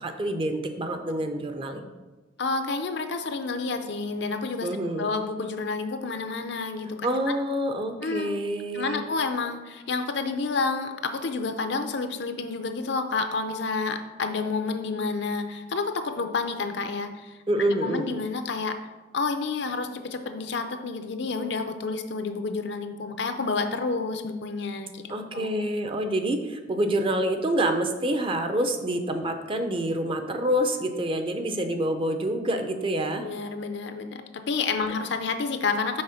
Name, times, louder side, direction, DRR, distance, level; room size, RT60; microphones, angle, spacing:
voice 1, 0.0-1.9 4.6-5.1 7.0-9.0 17.5-18.1 25.1-33.2, right 1 dB, 30° right, 6 dB, 0.6 m, -27 dB
voice 2, 2.4-4.7 5.0-7.1 8.0-8.4 8.7-17.3 17.8-18.8 19.1-25.5 33.2-34.2 34.5-36.0, left 4 dB, 65° left, 7 dB, 0.6 m, -29 dB
6.4 x 4.2 x 5.8 m, 1.2 s
head